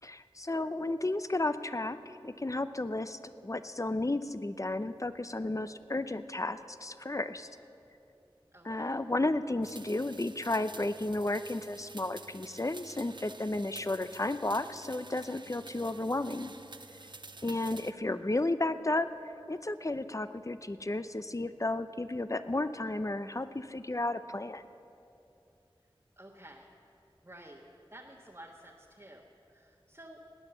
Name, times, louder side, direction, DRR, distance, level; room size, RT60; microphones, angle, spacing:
voice 1, 0.0-7.5 8.6-16.5 17.4-19.1 19.5-24.6, left 2 dB, 35° left, 12 dB, 0.6 m, -33 dB
voice 2, 8.5-9.0 17.5-18.0 26.2-26.7 27.2-27.6 27.9-30.2, right 1 dB, 30° right, -2 dB, 1.3 m, -52 dB
sound 1, 9.6-17.9, right 3 dB, 55° right, 0.6 m, -50 dB
18.0 x 9.5 x 7.0 m, 2.7 s
wide cardioid pair, 40°, 10 cm